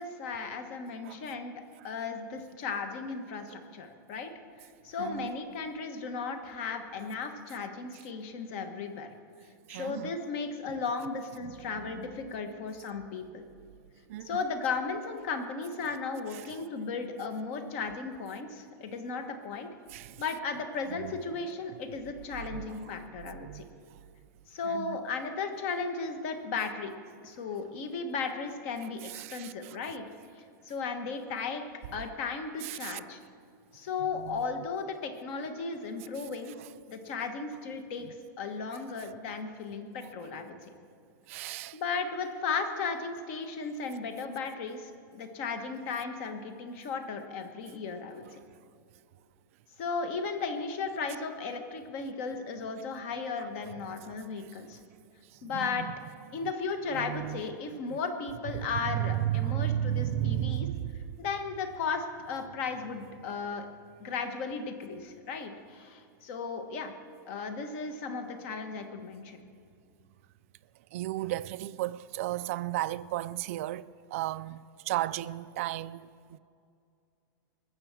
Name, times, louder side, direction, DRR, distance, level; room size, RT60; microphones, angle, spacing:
voice 1, 0.0-1.5 1.8-4.3 4.6-9.1 9.7-13.4 14.2-19.7 20.2-23.6 24.5-26.9 27.2-30.0 30.4-31.6 31.9-33.2 33.7-36.5 36.9-38.1 38.4-40.6 41.7-48.2 49.8-54.8 55.4-55.9 56.3-60.7 61.2-63.7 64.0-66.9 67.2-69.4, left 4 dB, 40° left, 1.3 m, -35 dB
voice 2, 5.0-5.3 9.7-10.2 11.8-12.0 14.1-14.4 19.9-20.2 20.9-21.2 22.5-22.6 23.4-23.7 24.7-25.0 29.1-29.8 32.6-33.0 34.1-34.4 41.3-41.8 55.4-55.9 56.9-57.4 57.9-58.0 58.8-60.9 70.9-73.9 74.1-76.4, right 14 dB, 40° right, 0.3 m, -34 dB
20.5 x 6.9 x 7.4 m
supercardioid pair, 175°, 11 cm